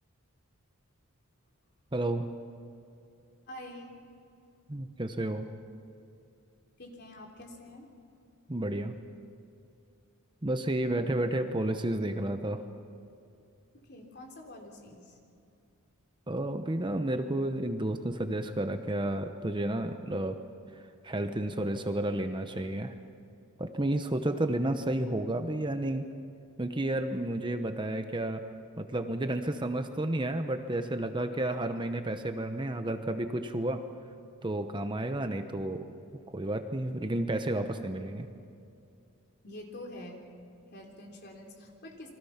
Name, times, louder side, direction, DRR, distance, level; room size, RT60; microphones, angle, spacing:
voice 1, 1.9-2.3 4.7-5.5 8.5-9.0 10.4-12.6 16.3-20.4 20.7-22.9 23.6-26.1 26.6-28.4 28.8-33.8 34.4-35.9 36.3-38.3, right 1 dB, 20° right, 7 dB, 0.9 m, -31 dB
voice 2, 3.5-4.1 6.8-7.9 10.9-11.2 13.7-15.2 37.5-38.1 39.4-40.2 40.7-42.1, left 1 dB, 50° left, 1 dB, 3.5 m, -47 dB
29.0 x 23.0 x 5.8 m, 2.5 s
head